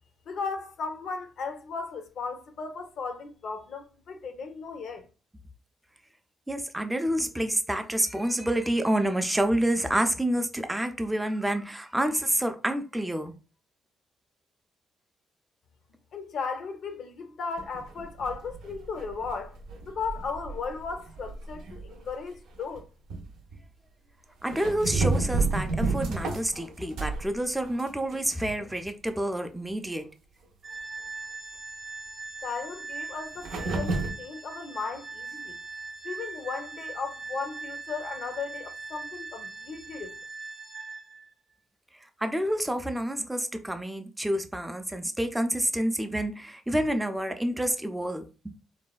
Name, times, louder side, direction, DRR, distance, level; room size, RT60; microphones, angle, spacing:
voice 1, 0.3-5.1 16.1-19.5 19.9-22.9 32.4-35.6 36.0-40.2, left 4 dB, 65° left, 0.5 m, -36 dB
voice 2, 6.5-13.3 24.4-30.0 42.0-48.5, right 1 dB, 10° right, 0.4 m, -28 dB
sound 1, 17.6-22.1 22.6-22.8 23.1-23.6 24.5-27.3 27.6-28.8 29.1-29.2 29.7-29.8 33.4-34.1, right 3 dB, 85° right, 0.5 m, -31 dB
Organ, 30.6-41.3, right 4 dB, 45° right, 0.6 m, -40 dB
3.1 x 2.1 x 2.3 m
cardioid pair, 90°, 0 cm